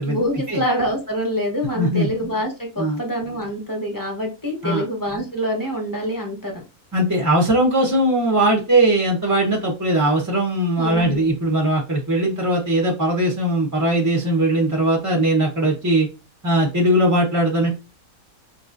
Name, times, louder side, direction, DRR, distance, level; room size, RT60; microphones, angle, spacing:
voice 1, 0.1-6.6 10.8-11.3, equal, 15° left, 1 dB, 1.0 m, -25 dB
voice 2, 1.7-2.1 2.8-3.0 4.6-4.8 6.9-16.1 16.4-17.7, right 1 dB, 15° right, -1 dB, 0.6 m, -19 dB
4.6 x 3.0 x 2.5 m, 0.29 s
omnidirectional pair, 1.5 m